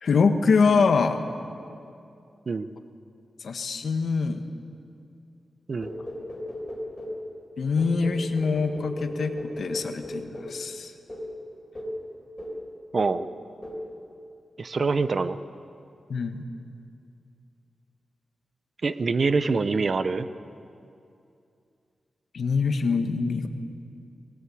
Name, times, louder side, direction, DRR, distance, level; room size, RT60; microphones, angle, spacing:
voice 1, 0.0-1.2 3.4-4.4 7.6-10.9 16.1-16.4 22.3-23.5, left 4 dB, 65° left, 6 dB, 1.4 m, -24 dB
sound 1, 5.8-7.2 7.8-10.6 11.1-11.3 11.7-12.0 12.4-12.7 13.0-13.3 13.6-13.9, left 1 dB, 15° left, 4.5 m, -36 dB
voice 2, 12.9-13.3 14.6-15.4 18.8-20.3, right 4 dB, 40° right, 12 dB, 0.7 m, -25 dB
21.5 x 18.5 x 8.5 m, 2.5 s
wide cardioid pair, 170°, 0 cm